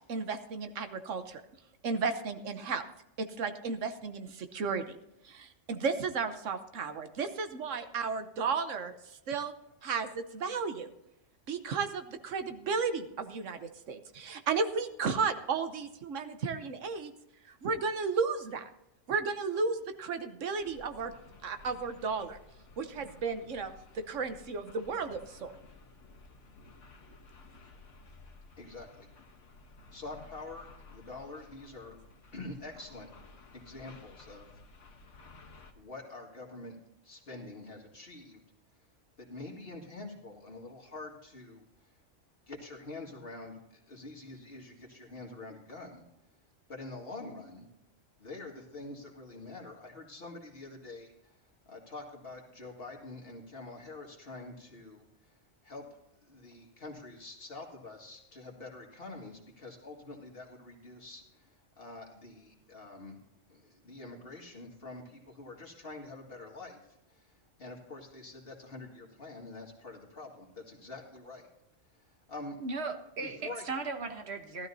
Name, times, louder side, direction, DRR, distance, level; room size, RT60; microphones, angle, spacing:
voice 1, 0.0-1.4 1.8-2.8 3.2-4.8 5.2-9.5 9.8-10.9 11.5-17.1 17.4-18.7 19.1-21.1 21.4-22.4 22.8-25.5, right 5 dB, 80° right, 9 dB, 1.2 m, -34 dB
sound 1, 20.6-35.7, left 3 dB, 75° left, 1.5 m, -55 dB
voice 2, 28.6-29.1 29.9-32.0 32.3-33.1 33.5-34.5 35.8-36.8 37.0-38.4 39.2-41.9 42.5-46.0 46.7-47.7 48.2-51.4 51.7-55.3 55.6-55.9 56.2-63.2 63.5-71.5 71.9-72.6 73.2-73.7, left 2 dB, 50° left, 0 dB, 2.2 m, -46 dB
voice 3, 72.6-74.7, right 3 dB, 60° right, 5 dB, 1.3 m, -37 dB
15.5 x 12.5 x 2.7 m, 0.86 s
omnidirectional pair, 1.3 m